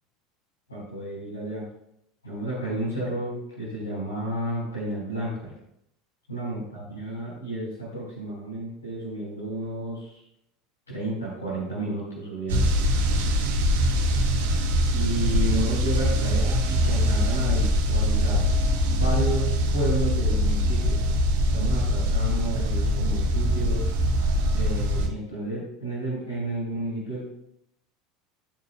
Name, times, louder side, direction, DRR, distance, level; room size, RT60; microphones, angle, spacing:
voice 1, 0.7-1.6 2.2-5.5 6.3-10.2 10.9-12.6 14.9-18.4 18.8-21.0 21.5-23.9 24.5-27.2, right 1 dB, 85° left, -7 dB, 3.8 m, -31 dB
sound 1, 12.5-25.1, equal, 70° right, 1.4 m, -23 dB
16.0 x 6.9 x 2.2 m, 0.77 s
figure-of-eight pair, 75°, 0 cm